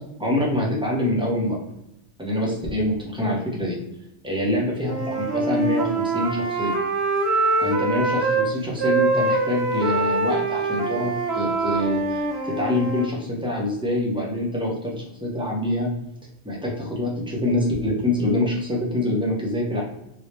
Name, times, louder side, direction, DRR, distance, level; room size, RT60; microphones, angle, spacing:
voice 1, 0.2-1.6 2.2-3.8 4.2-6.8 7.6-14.9 15.2-15.9 16.4-19.8, left 1 dB, 5° right, -3 dB, 0.8 m, -25 dB
Wind instrument woodwind instrument, 4.9-8.5 8.8-13.1, right 3 dB, 65° right, 0.9 m, -24 dB
3.1 x 2.7 x 3.2 m, 0.83 s
omnidirectional pair, 1.2 m